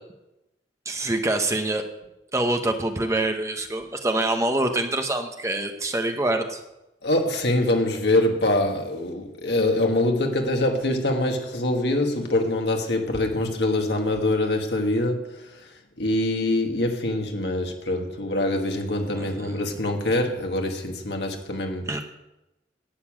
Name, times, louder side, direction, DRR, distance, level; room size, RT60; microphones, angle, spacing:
voice 1, 0.8-1.8 2.3-6.6 19.1-19.6 21.9-22.0, right 2 dB, 15° right, 1.0 m, -25 dB
voice 2, 7.0-15.4 16.0-21.9, left 1 dB, 70° left, 1.9 m, -24 dB
11.0 x 7.0 x 8.9 m
head